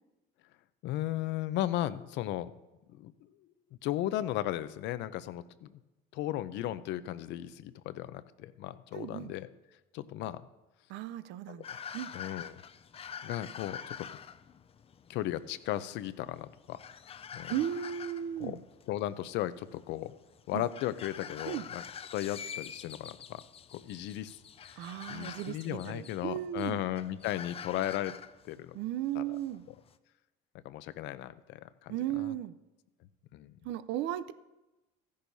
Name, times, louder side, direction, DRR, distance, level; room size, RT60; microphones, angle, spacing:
voice 1, 0.8-2.5 2.9-3.1 3.8-5.8 6.1-9.5 9.9-10.4 11.5-11.8 12.1-12.6 13.2-14.2 15.1-16.8 17.3-17.5 18.4-18.6 18.9-20.1 20.5-21.8 22.1-23.4 23.7-28.1 28.4-28.8 29.1-29.2 30.6-32.3 33.3-33.6, left 13 dB, 65° left, 14 dB, 0.7 m, -36 dB
voice 2, 8.9-9.3 10.9-11.7 11.9-12.1 17.5-18.6 20.5-20.6 21.5-21.6 24.8-26.8 28.7-29.6 31.9-32.5 33.6-34.3, right 11 dB, 65° right, 14 dB, 0.6 m, -35 dB
sound 1, 11.6-29.9, left 7 dB, 30° left, 0.5 m, -46 dB
14.5 x 10.5 x 2.8 m, 1.0 s
supercardioid pair, 95°, 20 cm